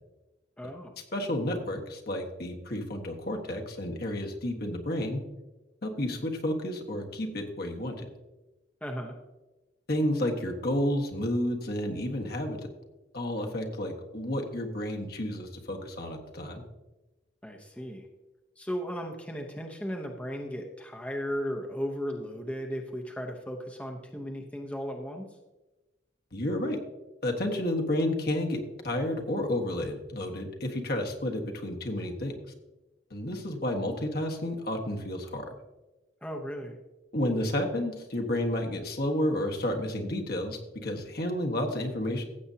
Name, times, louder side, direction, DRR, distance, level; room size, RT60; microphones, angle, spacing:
voice 1, 0.6-0.9 8.8-9.2 17.4-18.1 18.6-25.3 36.2-36.8, equal, 5° left, 2 dB, 0.8 m, -36 dB
voice 2, 1.1-5.2 5.8-8.1 9.9-12.6 13.1-16.6 26.3-26.8 27.2-32.3 33.1-35.5 37.1-42.2, left 1 dB, 55° left, 2 dB, 1.5 m, -31 dB
15.5 x 7.9 x 2.8 m, 1.1 s
head